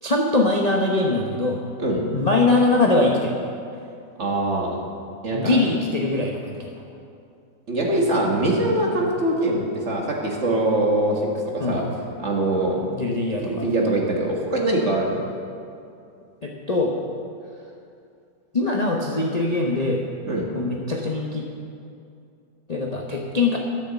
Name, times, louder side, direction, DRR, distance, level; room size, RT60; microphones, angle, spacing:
voice 1, 0.0-1.6 2.1-3.3 5.3-6.7 8.9-9.1 11.6-11.9 12.9-13.7 16.4-17.0 18.5-20.0 20.5-21.5 22.7-23.6, left 2 dB, 30° left, -1 dB, 0.7 m, -22 dB
voice 2, 4.2-4.8 5.2-5.6 7.7-11.2 11.5-11.8 12.2-12.8 13.4-15.2 20.2-20.5, right 1 dB, 40° right, -1 dB, 1.8 m, -23 dB
13.0 x 7.1 x 7.1 m, 2.5 s
omnidirectional pair, 2.0 m